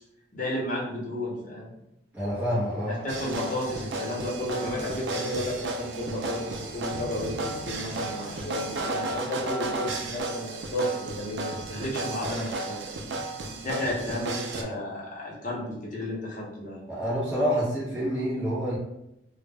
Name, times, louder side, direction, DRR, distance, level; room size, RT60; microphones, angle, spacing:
voice 1, 0.3-1.7 3.0-12.8 13.6-16.8, left 1 dB, 45° left, -4 dB, 0.7 m, -32 dB
voice 2, 2.1-3.0 16.9-18.8, equal, 10° right, -9 dB, 0.5 m, -27 dB
sound 1, 2.1-9.3, equal, 50° right, 0.8 m, -45 dB
sound 2, 3.1-14.6, right 2 dB, 70° right, 0.3 m, -34 dB
sound 3, 6.9-13.4, equal, 85° left, 0.7 m, -49 dB
2.1 x 2.0 x 3.3 m, 0.85 s
head